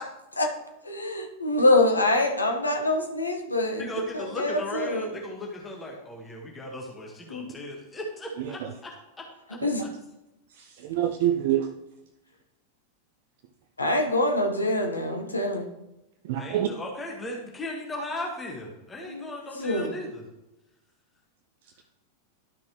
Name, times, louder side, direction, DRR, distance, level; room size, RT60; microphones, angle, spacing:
voice 1, 0.8-3.9 4.1-5.1 7.3-7.5 9.6-9.8 13.8-15.7 19.1-19.3 19.6-20.0, left 2 dB, 80° left, 3 dB, 1.3 m, -25 dB
voice 2, 3.8-8.9 9.5-9.6 16.3-20.2, left 1 dB, 15° left, 0 dB, 1.6 m, -36 dB
voice 3, 8.4-8.7 9.6-9.7 10.5-11.7 16.2-16.7, right 11 dB, 50° right, 5 dB, 0.6 m, -27 dB
12.5 x 5.9 x 3.1 m, 0.93 s
figure-of-eight pair, 90°, 0 cm